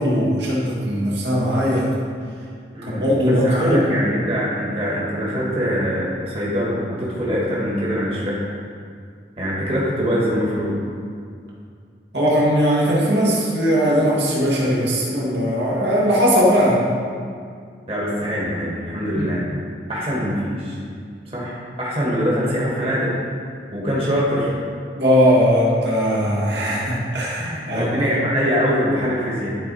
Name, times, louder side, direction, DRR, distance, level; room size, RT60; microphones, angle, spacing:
voice 1, 0.0-1.9 2.9-3.8 12.1-16.8 19.1-19.3 25.0-27.9 28.1-28.2, equal, 75° right, -6 dB, 1.9 m, -19 dB
voice 2, 2.7-8.4 9.4-10.8 17.9-19.4 19.9-20.8 21.3-23.1 23.7-24.5 27.4-29.5, equal, 30° right, -6 dB, 1.6 m, -23 dB
12.0 x 4.1 x 4.2 m, 2.2 s
head